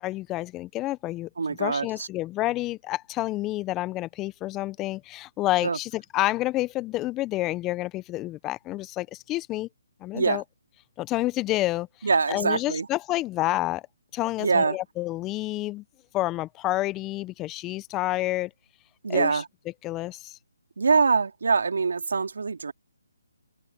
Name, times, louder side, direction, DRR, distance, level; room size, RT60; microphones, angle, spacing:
voice 1, 0.0-9.7 10.0-10.4 11.0-13.8 14.1-15.8 16.1-18.5 19.1-19.4 19.8-20.4, left 17 dB, 15° left, 0.7 m, -29 dB
voice 2, 1.4-2.1 5.6-5.8 10.1-10.4 12.0-12.9 14.4-14.8 19.0-19.5 20.8-22.7, right 4 dB, 70° right, 2.3 m, -24 dB
figure-of-eight pair, 150°, 0 cm